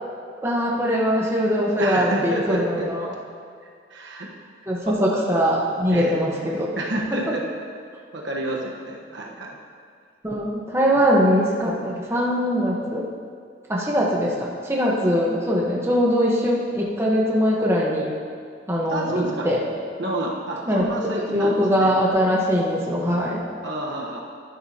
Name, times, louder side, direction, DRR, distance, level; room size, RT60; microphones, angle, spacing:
voice 1, 0.4-3.1 4.7-6.7 10.2-13.0 13.7-18.1 18.7-19.6 20.7-20.8 21.3-23.5, equal, 15° right, -4 dB, 1.1 m, -22 dB
voice 2, 1.8-2.9 3.9-4.3 4.9-5.0 5.9-6.2 6.7-7.4 8.1-9.6 10.9-11.0 18.9-19.5 20.0-21.9 23.6-24.2, right 1 dB, 65° right, -2 dB, 1.2 m, -29 dB
11.0 x 10.5 x 2.9 m, 2.1 s
head